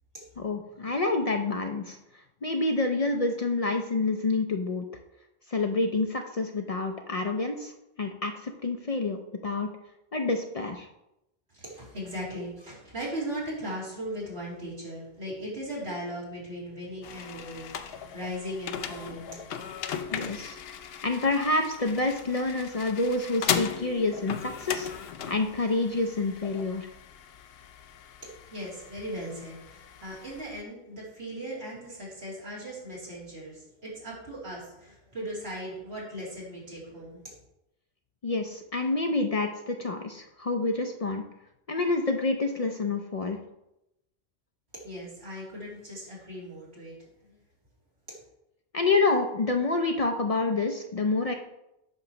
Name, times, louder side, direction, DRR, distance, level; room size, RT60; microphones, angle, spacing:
voice 1, 0.4-2.0 2.4-4.9 5.5-7.7 8.0-9.2 9.4-9.7 10.1-10.9 20.1-20.6 21.0-24.9 25.3-26.9 38.2-41.2 41.7-43.4 48.7-51.3, left 3 dB, 45° left, 5 dB, 0.5 m, -28 dB
voice 2, 11.5-19.4 28.2-37.2 44.8-46.9 47.2-47.4, equal, 85° right, -7 dB, 2.9 m, -38 dB
sound 1, 17.0-30.6, left 8 dB, 75° left, 0.8 m, -37 dB
8.6 x 3.1 x 5.8 m, 0.87 s
omnidirectional pair, 1.0 m